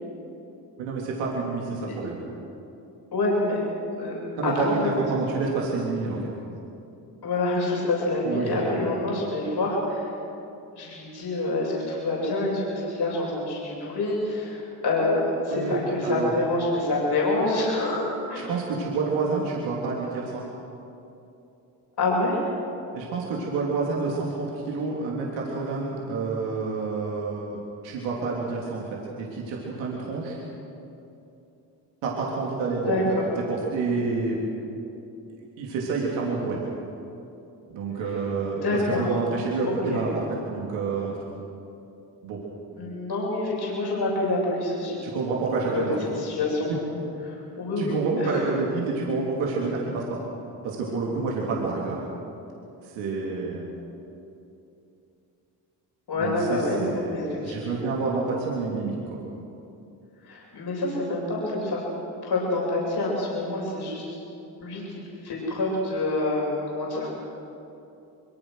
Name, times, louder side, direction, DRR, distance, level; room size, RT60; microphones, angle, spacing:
voice 1, 0.8-2.2 4.4-6.2 8.2-8.8 15.5-15.8 16.0-16.3 18.5-20.4 22.9-30.4 32.0-33.0 33.5-34.4 35.3-36.6 37.7-41.2 42.2-42.4 45.0-46.0 47.8-50.2 50.6-52.0 52.8-53.7 56.1-57.1 57.4-59.2, right 4 dB, 85° right, -3 dB, 3.3 m, -28 dB
voice 2, 3.1-3.6 3.9-4.2 4.4-4.7 7.2-10.1 10.8-18.5 22.0-22.4 32.9-33.3 38.6-39.2 39.7-40.0 42.7-45.0 45.7-45.8 46.2-46.7 47.3-48.4 56.1-57.8 60.2-61.8 62.2-64.2 64.6-67.1, left 2 dB, 60° left, -4 dB, 7.5 m, -27 dB
24.5 x 23.0 x 6.4 m, 2.8 s
hypercardioid pair, 50°, 44 cm